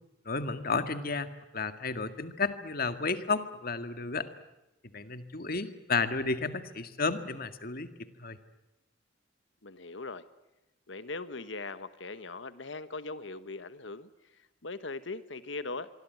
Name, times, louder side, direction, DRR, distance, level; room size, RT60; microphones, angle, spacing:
voice 1, 0.3-4.3 4.9-7.9 8.2-8.4, left 4 dB, 55° left, 9 dB, 2.0 m, -32 dB
voice 2, 9.6-10.2 10.9-15.9, left 3 dB, 80° left, 12 dB, 1.3 m, -40 dB
25.5 x 24.0 x 9.4 m, 0.98 s
head